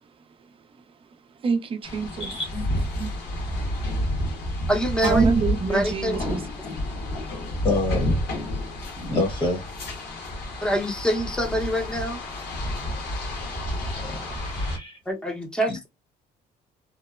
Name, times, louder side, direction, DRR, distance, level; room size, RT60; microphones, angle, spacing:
voice 1, 1.4-2.3 3.0-3.1 5.0-6.4, right 5 dB, 30° right, 0.5 m, -25 dB
sound 1, 1.8-14.8, left 1 dB, 70° left, 1.1 m, -30 dB
voice 2, 2.2-2.7 7.6-8.0 9.0-9.7 14.0-15.0, left 2 dB, 30° left, 0.9 m, -27 dB
voice 3, 4.7-5.3 5.7-6.2 10.6-12.2 15.1-15.9, equal, 5° left, 0.7 m, -25 dB
2.8 x 2.0 x 2.3 m
cardioid pair, 110°, 17 cm